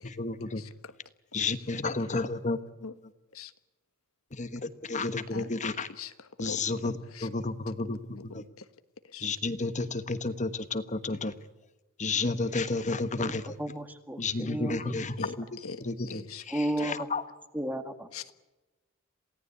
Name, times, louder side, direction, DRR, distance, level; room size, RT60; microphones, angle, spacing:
voice 1, 0.0-0.6 1.3-2.6 4.3-5.9 6.4-8.0 8.3-8.4 9.2-11.3 12.0-13.6 14.2-15.3 15.8-15.9 16.5-17.2, left 3 dB, 35° left, 11 dB, 1.3 m, -31 dB
voice 2, 0.6-0.9 2.1-2.2 2.8-2.9 3.3-3.5 5.3-5.5 5.9-7.3 7.8-8.7 9.0-9.3 15.2-16.4 18.1-18.3, left 5 dB, 75° left, 11 dB, 1.4 m, -43 dB
voice 3, 13.6-15.1 16.5-17.1 17.5-18.1, right 1 dB, 10° right, 8 dB, 2.0 m, -33 dB
28.0 x 18.0 x 8.3 m, 1.1 s
head